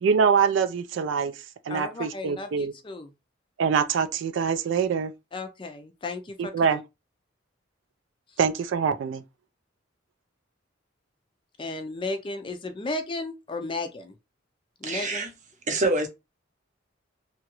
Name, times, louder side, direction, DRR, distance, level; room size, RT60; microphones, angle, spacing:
voice 1, 0.0-2.7 3.6-5.1 6.4-6.8 8.4-9.2, right 6 dB, 70° right, 0.3 m, -24 dB
voice 2, 1.7-3.1 5.3-6.8 11.6-14.1 14.8-15.3, left 2 dB, 25° left, 0.4 m, -34 dB
voice 3, 14.8-15.3 15.7-16.1, right 2 dB, 40° right, 0.7 m, -25 dB
2.9 x 2.3 x 2.9 m
head